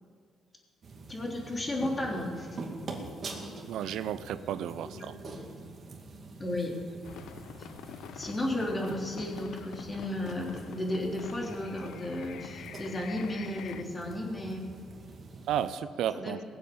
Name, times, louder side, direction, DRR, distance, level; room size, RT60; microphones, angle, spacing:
sound 1, 0.8-15.7, right 3 dB, 45° right, 2.4 m, -45 dB
voice 1, 1.1-2.5 5.0-5.4 6.4-6.7 8.2-14.7 16.1-16.3, left 1 dB, 25° left, -1 dB, 3.5 m, -34 dB
voice 2, 3.7-5.2 15.5-16.4, right 10 dB, 80° right, 14 dB, 0.5 m, -33 dB
sound 2, 7.0-13.8, left 9 dB, 80° left, 0.6 m, -46 dB
19.5 x 7.8 x 7.1 m, 2.1 s
cardioid pair, 90°, 0 cm